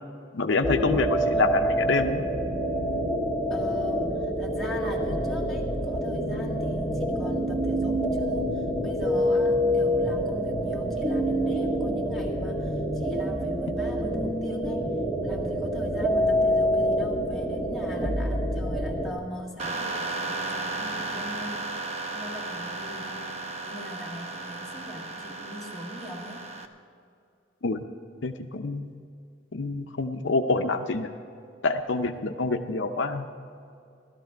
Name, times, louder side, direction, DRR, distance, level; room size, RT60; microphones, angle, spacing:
voice 1, 0.3-2.2 27.6-27.8 28.2-29.0 29.5-31.1 31.6-33.3, left 3 dB, 65° left, 6 dB, 0.6 m, -26 dB
sound 1, 0.6-19.1, equal, 15° right, 1.9 m, -26 dB
voice 2, 3.5-14.9 15.2-21.7 22.1-26.5, left 1 dB, ahead, -5 dB, 1.8 m, -41 dB
sound 2, 19.6-26.7, right 3 dB, 35° right, 0.8 m, -34 dB
16.0 x 12.5 x 4.6 m, 2.4 s
head